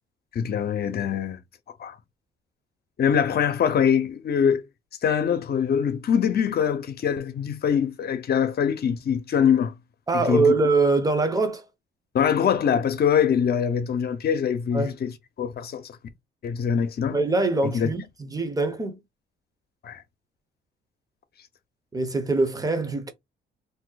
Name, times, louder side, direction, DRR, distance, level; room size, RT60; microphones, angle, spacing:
voice 1, 0.3-1.4 1.8-1.9 3.0-4.6 5.0-9.7 10.1-10.5 12.1-15.1 15.4-15.9 16.4-17.2 17.6-17.9 19.8-20.0, left 7 dB, 50° left, 0.8 m, -23 dB
voice 2, 10.1-11.7 14.7-15.0 17.1-19.0 21.9-23.1, right 3 dB, 20° right, 0.8 m, -23 dB
2.7 x 2.0 x 3.9 m
cardioid pair, 90°, 20 cm